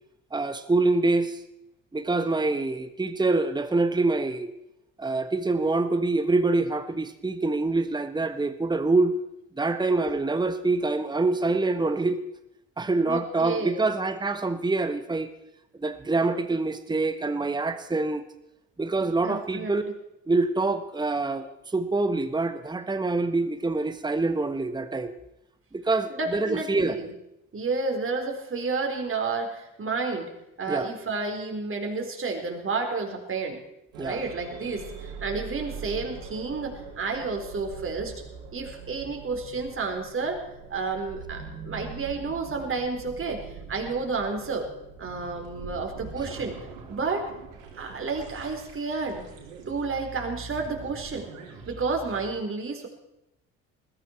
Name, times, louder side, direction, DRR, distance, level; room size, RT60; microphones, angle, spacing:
voice 1, 0.3-1.4 1.9-4.5 5.0-9.1 9.6-12.2 12.8-15.3 15.8-18.2 18.8-19.8 20.3-21.5 21.7-25.1 25.7-27.0 30.7-30.9 34.0-34.2, right 3 dB, 10° right, 10 dB, 1.4 m, -25 dB
voice 2, 13.1-13.9 19.0-19.9 26.1-27.1 27.5-30.3 30.6-33.6 34.0-38.1 38.5-40.4 40.7-44.7 45.0-46.6 46.9-47.3 47.8-49.3 49.7-51.3 51.7-52.9, right 4 dB, 30° right, 3 dB, 4.2 m, -31 dB
sound 1, 33.9-52.3, right 5 dB, 75° right, 3.7 m, -43 dB
21.0 x 14.0 x 4.6 m, 0.87 s
figure-of-eight pair, 55°, 39 cm